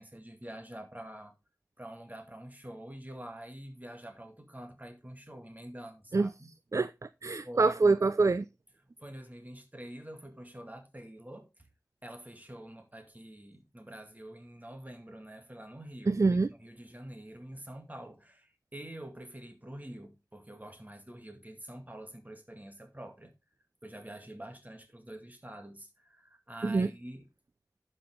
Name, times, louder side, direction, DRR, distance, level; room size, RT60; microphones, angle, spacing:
voice 1, 0.0-1.3 1.8-6.5 7.4-7.7 9.0-11.7 12.0-16.2 16.5-23.3 23.8-27.3, right 1 dB, 25° right, 2.1 m, -46 dB
voice 2, 6.7-8.5 16.1-16.5 26.6-26.9, right 3 dB, 50° right, 0.4 m, -26 dB
11.5 x 5.6 x 3.7 m
wide cardioid pair, 60°, 7 cm